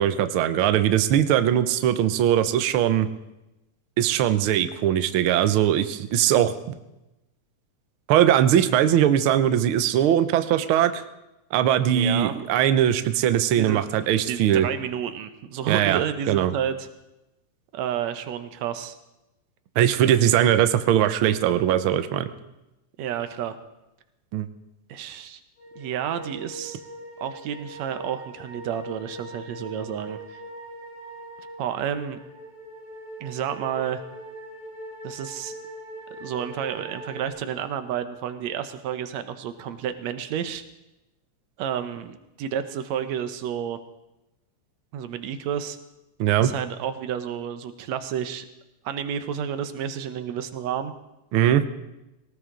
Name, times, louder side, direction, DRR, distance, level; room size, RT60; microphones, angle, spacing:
voice 1, 0.0-3.1 4.0-6.5 8.1-11.0 11.5-14.7 15.7-16.0 16.3-16.5 19.8-22.3 24.3-24.5 46.2-46.5 51.3-51.6, right 11 dB, 90° right, 10 dB, 1.1 m, -20 dB
voice 2, 11.8-12.3 13.6-13.8 14.3-16.9 17.7-19.0 20.1-20.3 23.0-23.6 24.9-25.4 25.8-26.8 27.2-30.4 31.6-32.2 33.2-34.0 35.0-35.6 36.2-40.6 41.6-43.8 44.9-45.8 46.4-48.5 48.8-50.9, right 9 dB, 70° right, 10 dB, 2.0 m, -30 dB
sound 1, 25.6-37.3, right 1 dB, 65° left, 5.7 m, -41 dB
18.5 x 18.0 x 3.8 m, 0.95 s
omnidirectional pair, 3.5 m